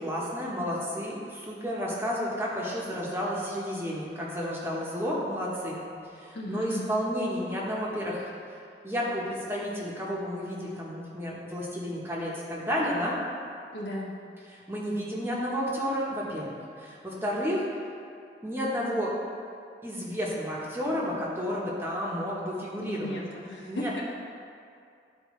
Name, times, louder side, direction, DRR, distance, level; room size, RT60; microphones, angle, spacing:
voice 1, 0.0-5.8 6.1-8.2 8.8-13.1 14.7-17.6 18.4-19.1 19.8-23.2 23.7-23.9, equal, 15° right, -5 dB, 1.1 m, -31 dB
voice 2, 6.3-7.0 13.7-14.1 22.8-24.0, equal, 85° left, -4 dB, 1.5 m, -35 dB
12.5 x 4.5 x 3.2 m, 2.4 s
head